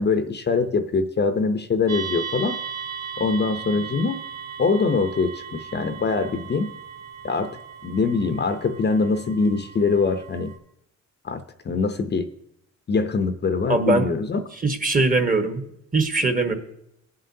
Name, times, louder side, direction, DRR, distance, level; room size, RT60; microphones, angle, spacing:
voice 1, 0.0-2.6 3.2-4.2 4.6-6.7 7.2-10.5 11.2-12.3 12.9-14.4, left 4 dB, 35° left, 9 dB, 0.7 m, -23 dB
sound 1, 1.9-10.6, right 7 dB, 60° right, 1.6 m, -37 dB
voice 2, 13.7-14.1 14.6-15.6 15.9-16.5, right 3 dB, 25° right, 6 dB, 1.3 m, -21 dB
18.5 x 7.6 x 2.7 m, 0.78 s
cardioid pair, 90°, 30 cm